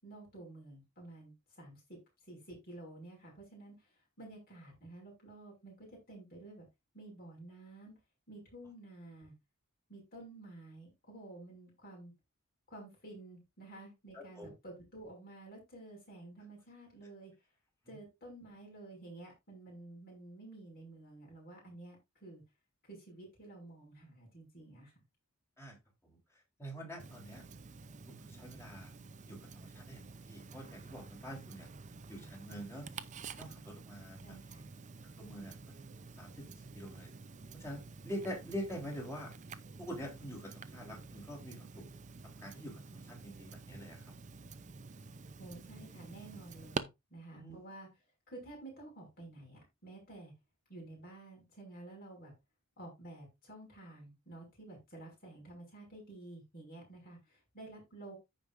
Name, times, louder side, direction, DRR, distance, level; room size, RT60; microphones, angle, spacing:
voice 1, 0.0-2.0 2.3-6.7 6.9-7.9 8.3-9.3 9.9-12.1 12.7-17.3 17.9-22.4 22.9-24.9 34.2-34.6 45.4-47.9 48.3-50.3 50.7-52.3 52.8-58.2, right 2 dB, 45° left, -1 dB, 6.1 m, -51 dB
voice 2, 14.1-14.5 17.9-18.0 25.6-25.8 26.0-26.2 26.6-27.4 28.1-28.9 29.3-30.0 30.3-31.7 32.1-32.8 33.4-34.2 35.2-35.7 36.2-37.1 37.6-39.3 39.8-41.8 42.4-44.0 47.3-47.6, equal, 10° left, -2 dB, 3.5 m, -45 dB
Tick-tock, 27.0-46.8, right 4 dB, 35° right, 0.6 m, -49 dB
14.5 x 5.3 x 2.6 m, 0.22 s
head